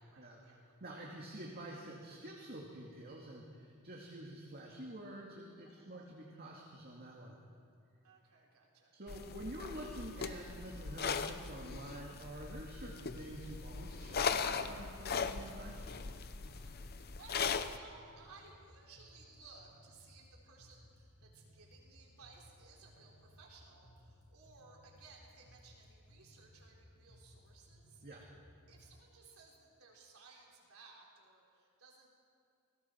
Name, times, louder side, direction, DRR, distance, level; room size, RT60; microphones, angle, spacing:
voice 1, 0.0-0.7 5.6-6.2 8.0-9.0 16.4-28.0 28.7-32.2, right 4 dB, 70° right, -2 dB, 3.9 m, -60 dB
voice 2, 0.8-7.4 8.9-15.9 28.0-28.2, right 1 dB, 45° right, -2 dB, 2.2 m, -48 dB
sound 1, 9.1-17.8, left 5 dB, 45° left, 0.7 m, -39 dB
sound 2, 14.0-29.0, equal, 85° left, 7.2 m, -62 dB
28.0 x 20.5 x 4.6 m, 2.4 s
head